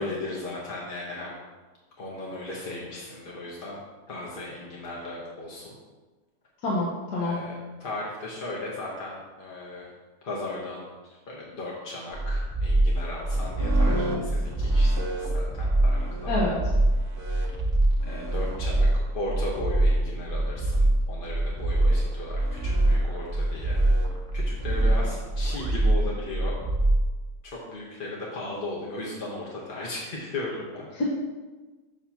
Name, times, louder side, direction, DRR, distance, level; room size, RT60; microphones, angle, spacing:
voice 1, 0.0-1.4 2.0-3.8 4.1-5.7 7.2-9.9 10.2-16.3 17.2-17.5 18.1-23.8 24.3-26.7 27.4-30.9, left 2 dB, 40° left, -4 dB, 0.9 m, -36 dB
voice 2, 6.6-7.4 16.3-16.6 31.0-31.1, left 2 dB, 80° left, -5 dB, 1.5 m, -26 dB
sound 1, 12.1-27.1, right 1 dB, 20° right, 1.1 m, -24 dB
sound 2, 13.3-25.8, right 2 dB, 45° right, 0.9 m, -38 dB
7.1 x 2.8 x 5.7 m, 1.3 s
omnidirectional pair, 1.7 m